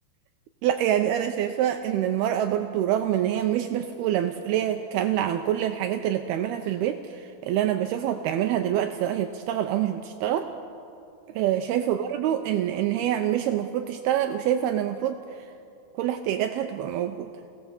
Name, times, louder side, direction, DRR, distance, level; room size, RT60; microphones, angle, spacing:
voice 1, 0.6-10.5 11.4-15.2 16.0-17.3, right 11 dB, 80° right, 6 dB, 2.6 m, -26 dB
28.5 x 18.0 x 7.2 m, 2.5 s
omnidirectional pair, 4.8 m